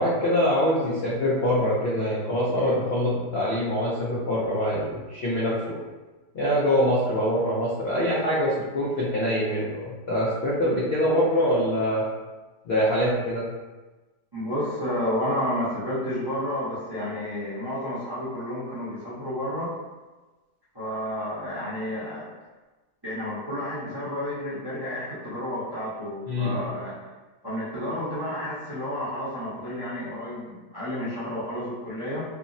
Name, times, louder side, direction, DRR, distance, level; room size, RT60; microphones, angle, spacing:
voice 1, 0.0-5.7 6.3-12.0 12.7-13.5 26.3-26.6, equal, 75° left, -7 dB, 0.5 m, -24 dB
voice 2, 14.3-19.7 20.7-22.3 23.0-27.0 27.4-32.2, left 1 dB, 25° right, -12 dB, 0.5 m, -31 dB
3.4 x 2.0 x 2.5 m, 1.2 s
omnidirectional pair, 1.7 m